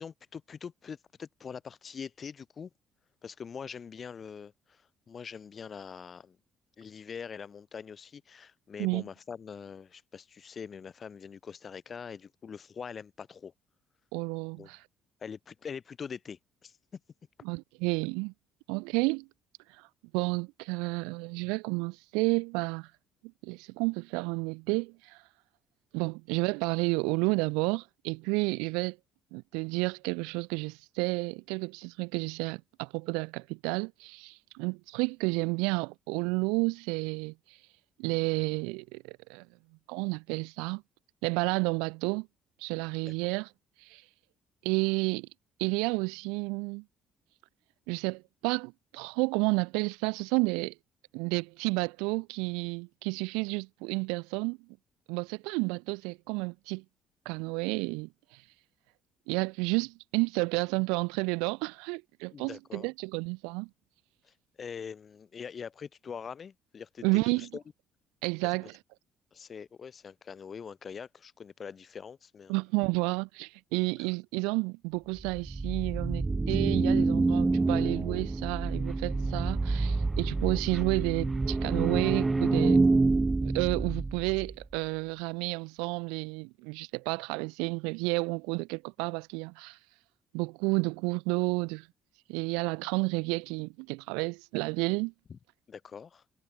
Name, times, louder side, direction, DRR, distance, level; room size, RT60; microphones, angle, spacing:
voice 1, 0.0-2.7 3.2-6.4 6.8-13.5 14.6-14.7 15.2-17.0 43.0-43.1 62.3-62.9 64.2-67.6 68.4-68.7 69.3-72.5 74.0-74.1 80.5-80.6 95.3-95.4 95.7-96.2, left 6 dB, 45° left, 1.4 m, -43 dB
voice 2, 14.1-14.8 17.4-18.3 18.7-19.3 19.7-19.9 20.1-22.9 23.4-25.2 25.9-29.0 29.3-37.3 38.0-39.5 39.9-40.8 41.2-42.3 42.6-43.5 43.8-44.0 44.6-45.3 45.6-46.8 47.9-50.7 51.1-54.6 55.1-56.8 57.3-58.4 59.3-63.7 67.0-67.5 68.2-68.7 72.5-82.8 83.4-89.8 90.3-91.9 92.3-95.1, right 30 dB, 75° right, 0.5 m, -31 dB
sound 1, 75.2-84.5, right 3 dB, 25° right, 0.5 m, -27 dB
hypercardioid pair, 50°, 0 cm